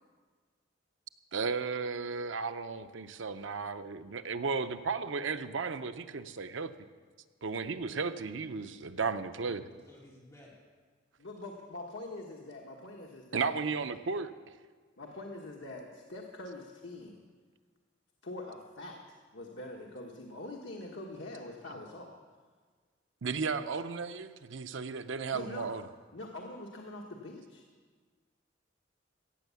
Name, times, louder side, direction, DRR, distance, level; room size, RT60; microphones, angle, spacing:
voice 1, 1.3-6.7 7.4-9.6 13.3-14.3 23.2-25.8, right 4 dB, 85° right, 10 dB, 0.7 m, -34 dB
voice 2, 9.3-10.7, equal, 15° left, -5 dB, 2.8 m, -55 dB
voice 3, 11.2-13.5 15.0-17.2 18.2-22.2 25.3-25.8 26.1-27.6, left 2 dB, 75° left, 0 dB, 1.3 m, -44 dB
15.5 x 8.2 x 7.0 m, 1.5 s
head